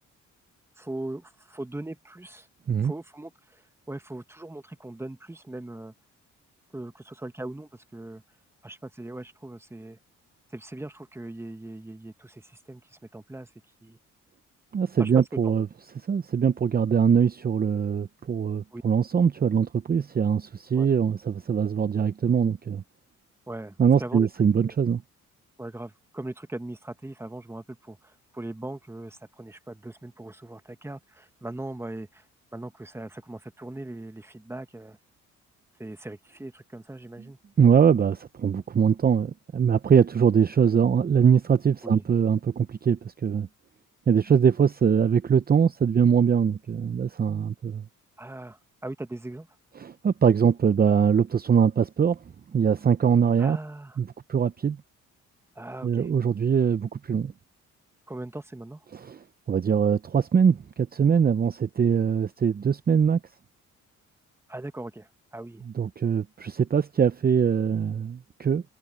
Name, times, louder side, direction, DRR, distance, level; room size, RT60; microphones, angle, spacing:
voice 1, 0.8-2.5 2.8-3.6 3.9-5.9 6.7-8.2 8.6-10.0 10.5-13.5 13.8-14.0 15.0-15.5 18.7-18.8 20.7-20.9 23.5-24.3 24.6-24.7 25.6-32.2 32.5-35.0 35.8-37.4 41.8-42.1 48.2-49.5 53.4-54.0 55.5-56.1 58.1-58.8 64.5-65.6, right 2 dB, 10° right, 1.5 m, -39 dB
voice 2, 14.7-15.7 16.0-22.8 23.8-25.0 37.6-43.5 44.1-47.8 49.8-52.2 52.5-53.6 54.0-54.8 55.8-57.3 58.9-59.2 59.5-63.2 65.7-68.6, right 7 dB, 30° right, 0.7 m, -22 dB
cardioid pair, 90°, 30 cm